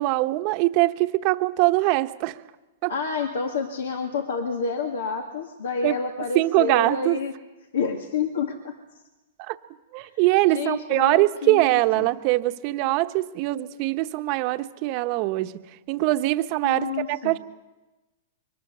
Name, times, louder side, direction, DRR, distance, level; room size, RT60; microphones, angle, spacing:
voice 1, 0.0-2.4 2.8-2.9 5.8-5.9 6.3-7.2 9.5-9.6 9.9-15.5 15.9-17.4, right 19 dB, 45° right, 9 dB, 1.0 m, -22 dB
voice 2, 2.9-7.3 7.7-8.7 10.0-10.1 10.5-12.1 16.6-17.3, left 5 dB, 80° left, 4 dB, 2.1 m, -29 dB
23.5 x 20.0 x 6.8 m, 1.1 s
hypercardioid pair, 130°, 0 cm